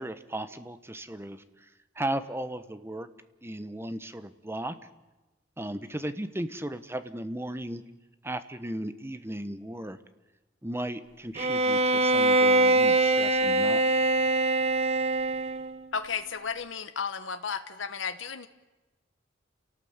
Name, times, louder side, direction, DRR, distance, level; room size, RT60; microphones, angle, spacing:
voice 1, 0.0-1.7 1.9-3.1 3.4-4.8 5.6-7.8 8.2-10.0 10.6-13.8, right 1 dB, 15° right, 11 dB, 1.1 m, -36 dB
Bowed string instrument, 11.4-15.8, right 2 dB, 35° right, 1.0 m, -23 dB
voice 2, 15.9-18.5, left 6 dB, 80° left, 9 dB, 1.2 m, -33 dB
29.0 x 18.0 x 8.1 m, 1.1 s
head